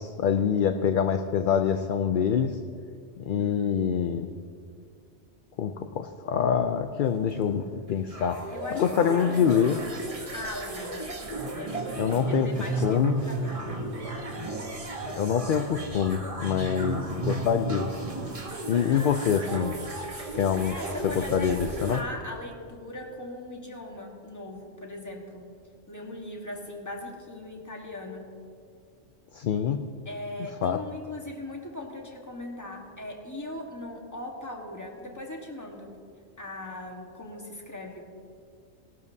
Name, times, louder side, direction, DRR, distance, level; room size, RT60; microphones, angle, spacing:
voice 1, 0.0-2.6 3.2-4.3 5.6-8.4 8.7-9.8 12.0-12.5 12.8-13.2 15.2-17.9 18.7-19.7 20.3-20.8 21.0-22.0 29.3-29.8 30.6-30.8, left 8 dB, 60° left, 7 dB, 0.6 m, -25 dB
voice 2, 3.4-4.1 8.5-9.7 10.3-11.0 11.4-13.6 18.9-19.3 20.6-25.5 25.9-28.3 30.0-36.0 36.4-38.0, left 1 dB, 15° left, 0 dB, 1.4 m, -39 dB
sound 1, 7.1-22.0, right 2 dB, 30° right, 1.2 m, -34 dB
19.5 x 12.0 x 2.7 m, 2.2 s
omnidirectional pair, 1.2 m